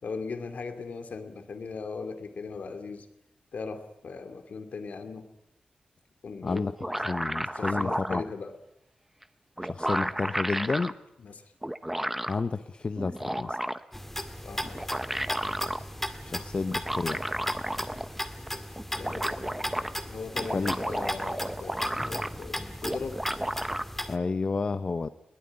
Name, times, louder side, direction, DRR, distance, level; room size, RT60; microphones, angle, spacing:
voice 1, 0.0-3.1 3.5-5.3 6.2-6.7 7.5-8.6 11.2-11.4 14.4-15.0 19.0-23.2, left 4 dB, 75° left, 7 dB, 2.5 m, -39 dB
voice 2, 6.4-8.2 9.6-11.0 12.3-13.6 16.2-17.3 20.5-20.8 24.1-25.1, left 4 dB, 45° left, 10 dB, 0.8 m, -31 dB
sound 1, 6.6-8.3 9.2-9.3 9.6-10.9 11.6-12.4 13.0-14.0 14.6-15.8 16.7-18.2 18.5-18.6 18.8-19.9 20.3-22.5 22.8-23.8, right 1 dB, 10° right, 0.9 m, -32 dB
sound 2, 13.9-24.2, left 1 dB, 10° left, 1.9 m, -37 dB
21.5 x 19.0 x 9.8 m, 0.85 s
wide cardioid pair, 115°, 3 cm